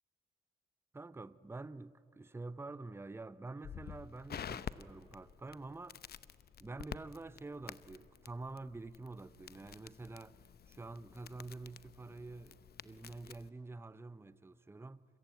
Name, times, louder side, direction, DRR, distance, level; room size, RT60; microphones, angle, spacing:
voice 1, 0.9-6.0 6.6-10.4 10.7-15.1, right 3 dB, 10° right, 0.6 m, -47 dB
Crackle, 3.6-13.5, left 8 dB, 55° left, 0.7 m, -50 dB
28.5 x 22.5 x 9.2 m
cardioid pair, 90°, 20 cm